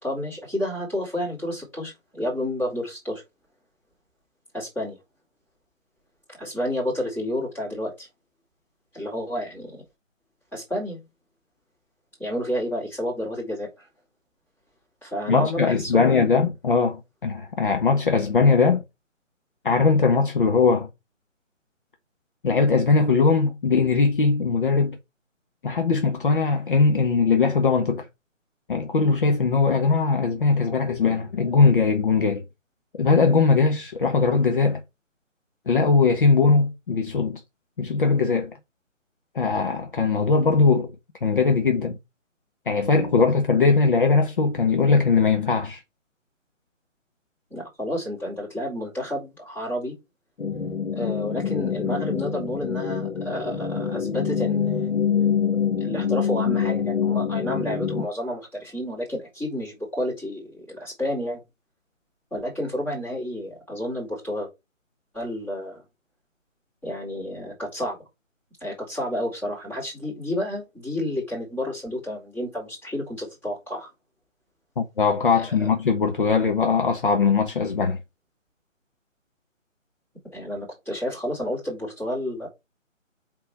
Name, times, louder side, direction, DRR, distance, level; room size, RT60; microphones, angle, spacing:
voice 1, 0.0-3.2 4.5-5.0 6.3-8.1 8.9-9.8 10.5-11.0 12.2-13.9 15.0-16.4 47.5-49.9 50.9-55.1 55.8-61.4 62.3-64.5 65.1-65.8 66.8-68.0 68.6-73.9 75.3-75.7 80.3-82.5, left 1 dB, 5° left, 4.5 m, -30 dB
voice 2, 15.3-18.8 19.6-20.9 22.4-25.0 25.6-28.0 28.7-32.4 33.0-34.8 35.7-37.4 37.8-38.5 39.3-40.9 41.2-41.9 42.7-45.8 74.8-78.0, left 4 dB, 40° left, 1.2 m, -20 dB
sound 1, 50.4-58.1, left 7 dB, 65° left, 1.6 m, -25 dB
8.3 x 4.4 x 5.0 m
figure-of-eight pair, 150°, 39 cm